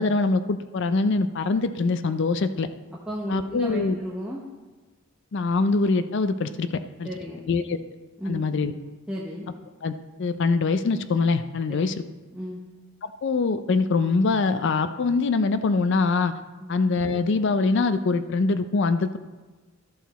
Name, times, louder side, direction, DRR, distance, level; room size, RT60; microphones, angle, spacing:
voice 1, 0.0-2.7 3.3-4.0 5.3-7.1 7.5-7.8 8.3-8.7 9.8-11.9 13.0-16.3 16.7-19.2, left 3 dB, 55° left, 11 dB, 0.4 m, -23 dB
voice 2, 3.1-4.4 7.0-7.8 8.2-8.5 9.1-9.5 11.7-11.8 12.3-12.6 16.6-16.7, equal, 5° right, -5 dB, 0.9 m, -34 dB
13.5 x 6.0 x 4.1 m, 1.3 s
head